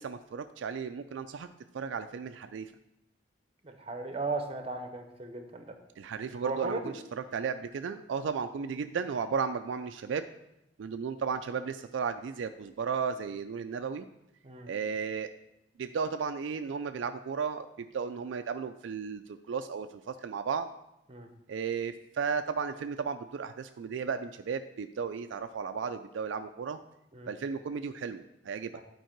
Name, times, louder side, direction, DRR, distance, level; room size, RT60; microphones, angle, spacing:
voice 1, 0.0-1.5 1.7-2.7 6.0-6.9 7.3-10.3 10.8-14.1 14.7-15.3 15.8-20.7 21.5-26.8 27.3-28.7, right 6 dB, 75° right, 8 dB, 0.4 m, -34 dB
voice 2, 3.6-5.8 6.4-7.0 14.4-14.7 21.1-21.3 27.1-27.3 28.7-28.8, right 3 dB, 30° right, 6 dB, 0.8 m, -36 dB
9.1 x 4.6 x 4.5 m, 0.85 s
head